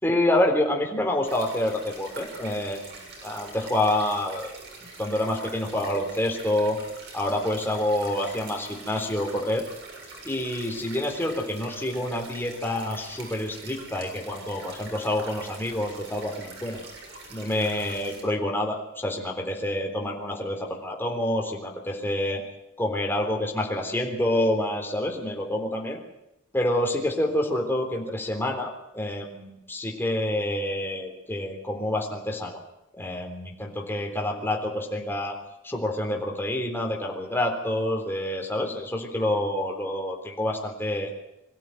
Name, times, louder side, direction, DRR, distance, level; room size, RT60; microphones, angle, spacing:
voice 1, 0.0-3.0 3.2-4.5 5.0-6.8 7.1-9.6 10.2-16.8 17.3-22.4 22.8-26.0 26.5-32.6 32.9-35.4 35.6-41.1, left 1 dB, 10° left, 0 dB, 3.7 m, -27 dB
sound 1, 1.2-18.2, right 3 dB, 55° right, 7.3 m, -44 dB
23.0 x 16.0 x 9.3 m, 0.85 s
head